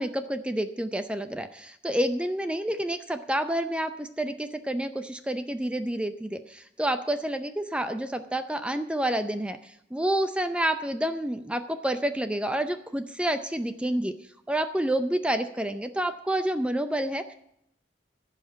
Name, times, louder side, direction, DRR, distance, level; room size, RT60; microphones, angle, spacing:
voice 1, 0.0-14.1 14.5-17.3, right 1 dB, 5° right, 9 dB, 0.5 m, -29 dB
15.5 x 5.8 x 9.4 m, 0.76 s
head